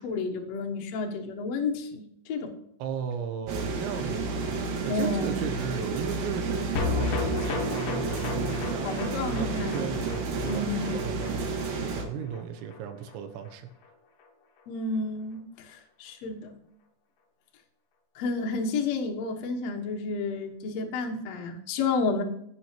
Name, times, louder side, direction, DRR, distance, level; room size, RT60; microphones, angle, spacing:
voice 1, 0.0-2.5 4.9-5.5 8.8-9.9 10.5-11.0 14.7-16.6 18.1-22.2, left 3 dB, 80° left, 2 dB, 1.5 m, -31 dB
voice 2, 2.8-4.5 4.8-7.1 7.4-13.7, right 7 dB, 90° right, 5 dB, 3.3 m, -36 dB
sound 1, 3.5-12.0, right 4 dB, 60° right, 2.9 m, -31 dB
sound 2, 6.8-13.2 13.5-13.6 13.8-13.9, left 4 dB, 65° left, 2.5 m, -34 dB
16.0 x 6.4 x 2.9 m, 0.75 s
omnidirectional pair, 5.0 m